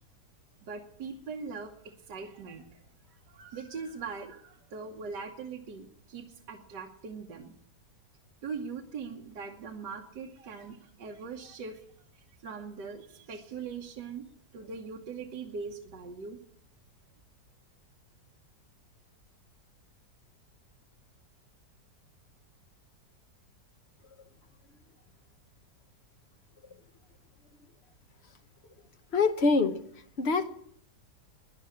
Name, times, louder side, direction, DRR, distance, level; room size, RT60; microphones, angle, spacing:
voice 1, 0.6-2.8 3.1-7.5 8.4-11.8 12.4-14.2 14.5-16.4, right 5 dB, 80° right, 1 dB, 1.8 m, -41 dB
voice 2, 29.1-29.8 30.2-30.5, left 4 dB, 45° left, 8 dB, 1.0 m, -24 dB
11.5 x 10.0 x 9.7 m, 0.67 s
omnidirectional pair, 1.9 m